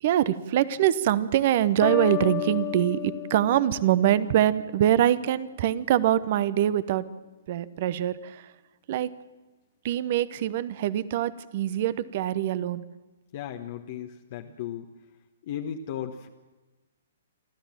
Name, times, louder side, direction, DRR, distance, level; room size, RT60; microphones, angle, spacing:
voice 1, 0.0-7.0 7.5-8.5 8.9-9.1 9.8-12.8, right 11 dB, 45° right, 17 dB, 0.9 m, -24 dB
sound 1, 1.8-4.6, left 16 dB, 20° left, 0.8 m, -32 dB
voice 2, 13.3-14.9 15.4-16.3, left 9 dB, 45° left, 4 dB, 1.1 m, -35 dB
28.5 x 13.0 x 7.4 m, 1.2 s
figure-of-eight pair, 120°, 0 cm